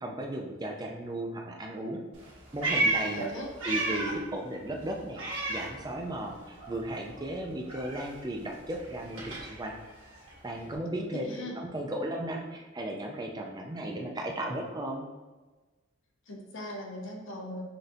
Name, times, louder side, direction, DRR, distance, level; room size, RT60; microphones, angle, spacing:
voice 1, 0.0-2.0 2.5-3.3 3.6-5.2 5.5-9.7 10.4-15.0, right 1 dB, 20° right, 1 dB, 0.4 m, -35 dB
Meow, 2.1-4.3 4.6-6.3 6.6-10.8, right 2 dB, 90° right, 1.4 m, -34 dB
voice 2, 3.1-3.5 10.9-11.6 16.3-17.7, equal, 70° left, 1 dB, 0.7 m, -38 dB
6.0 x 2.6 x 2.6 m, 1.2 s
head